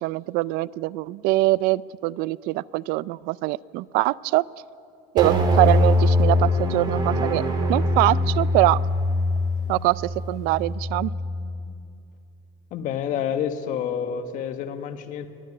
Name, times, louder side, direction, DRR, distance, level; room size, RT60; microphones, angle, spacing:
voice 1, 0.0-4.4 5.1-7.4 7.7-8.8 9.7-10.0 10.3-11.1, right 19 dB, 85° right, 20 dB, 0.5 m, -23 dB
sound 1, 5.2-11.6, left 1 dB, 30° right, 3.4 m, -23 dB
voice 2, 12.7-15.3, left 8 dB, 55° left, 8 dB, 1.4 m, -28 dB
22.5 x 18.0 x 9.9 m, 2.5 s
cardioid pair, 160°, 15 cm